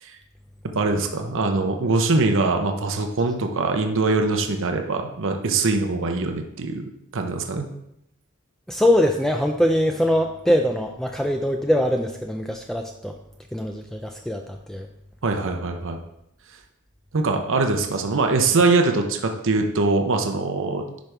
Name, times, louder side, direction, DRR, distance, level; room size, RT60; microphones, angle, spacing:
voice 1, 0.7-7.7 15.2-16.0 17.1-20.8, right 3 dB, 60° right, 5 dB, 0.8 m, -22 dB
voice 2, 8.7-13.1 13.5-14.9, equal, ahead, 3 dB, 0.3 m, -22 dB
10.5 x 5.2 x 3.3 m, 0.82 s
head